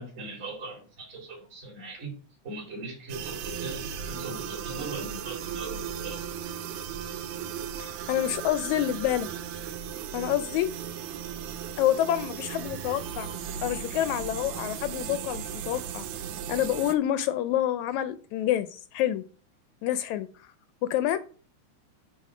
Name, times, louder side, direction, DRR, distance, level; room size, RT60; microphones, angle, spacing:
voice 1, 0.0-2.1 2.4-6.2, right 2 dB, 20° right, -1 dB, 2.8 m, -39 dB
sound 1, 3.1-16.9, right 8 dB, 75° right, 1.9 m, -36 dB
voice 2, 7.8-9.3 10.1-10.7 11.8-13.3 13.6-16.1 16.5-19.2 19.8-20.5 20.8-21.2, left 12 dB, 80° left, 12 dB, 1.8 m, -27 dB
8.4 x 3.7 x 4.9 m, 0.39 s
omnidirectional pair, 3.4 m